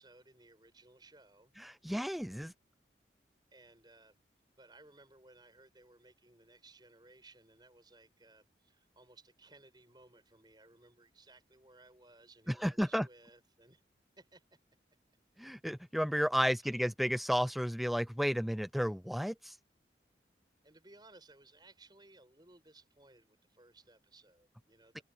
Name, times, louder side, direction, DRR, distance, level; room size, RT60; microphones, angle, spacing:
voice 1, 0.0-1.5 3.5-4.2 4.6-13.8 14.2-14.6 16.6-16.8 20.6-25.0, right 2 dB, 25° right, 7.8 m, -61 dB
voice 2, 1.6-2.5 12.6-13.1 15.4-19.6 24.9-25.0, equal, ahead, 0.6 m, -32 dB
head